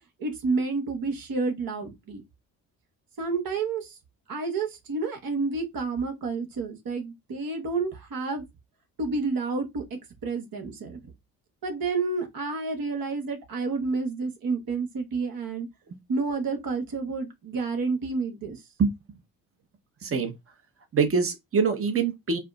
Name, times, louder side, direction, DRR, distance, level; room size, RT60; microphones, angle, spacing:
voice 1, 0.2-2.2 3.2-4.0 4.3-8.4 9.0-11.0 11.6-15.7 16.1-18.6, right 4 dB, 50° right, 1.4 m, -30 dB
voice 2, 20.0-20.3 20.9-22.4, right 5 dB, 30° right, 1.0 m, -24 dB
4.7 x 2.1 x 2.4 m
hypercardioid pair, 50°, 44 cm